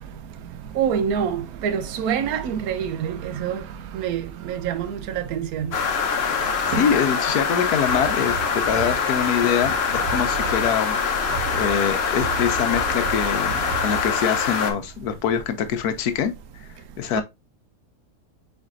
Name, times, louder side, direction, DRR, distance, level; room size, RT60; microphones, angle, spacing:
voice 1, 0.8-3.6 3.9-5.7 6.7-6.8 17.1-17.2, right 8 dB, 70° right, 1.0 m, -26 dB
sound 1, 5.7-14.7, left 5 dB, 50° left, 0.9 m, -24 dB
voice 2, 6.6-16.7 17.0-17.2, left 8 dB, 80° left, 1.2 m, -24 dB
sound 2, 7.9-14.6, right 7 dB, 45° right, 1.0 m, -35 dB
4.7 x 4.4 x 2.4 m
omnidirectional pair, 1.7 m